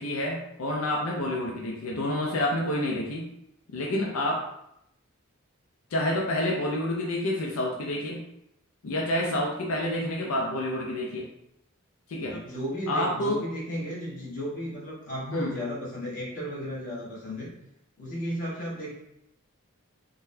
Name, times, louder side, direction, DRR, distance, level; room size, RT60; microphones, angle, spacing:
voice 1, 0.0-3.3 3.7-4.4 5.9-8.2 8.8-11.3 12.1-12.4 12.9-13.4 15.3-15.5, left 1 dB, 85° left, -2 dB, 0.5 m, -28 dB
voice 2, 12.2-17.5 18.0-19.0, equal, 40° left, -7 dB, 1.2 m, -34 dB
3.8 x 2.2 x 2.6 m, 0.79 s
head